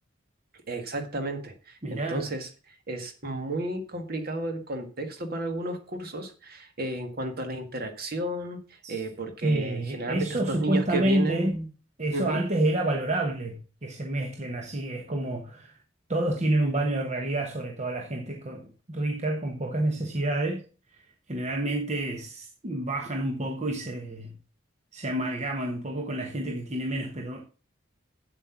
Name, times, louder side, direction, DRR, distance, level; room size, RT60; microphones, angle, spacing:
voice 1, 0.7-11.7 12.1-12.4, right 2 dB, 50° right, 1.8 m, -33 dB
voice 2, 1.8-2.2 8.8-8.9 9.4-11.5 12.0-15.8 16.1-20.6 20.9-24.4 24.9-27.4, right 1 dB, 35° right, 1.2 m, -29 dB
8.1 x 7.7 x 5.9 m
head